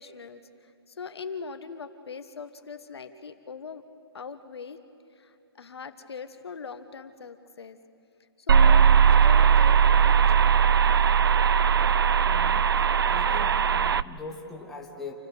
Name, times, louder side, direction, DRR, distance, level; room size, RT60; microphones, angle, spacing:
voice 1, 0.0-3.8 4.1-4.8 5.2-7.8 8.5-8.8 9.1-10.5, left 5 dB, 75° left, 9 dB, 1.5 m, -41 dB
sound 1, 8.5-14.0, right 7 dB, 60° right, 0.5 m, -19 dB
voice 2, 12.2-12.8 13.1-15.1, left 3 dB, ahead, -1 dB, 0.6 m, -42 dB
28.0 x 15.0 x 6.9 m, 2.6 s
hypercardioid pair, 180°, 13 cm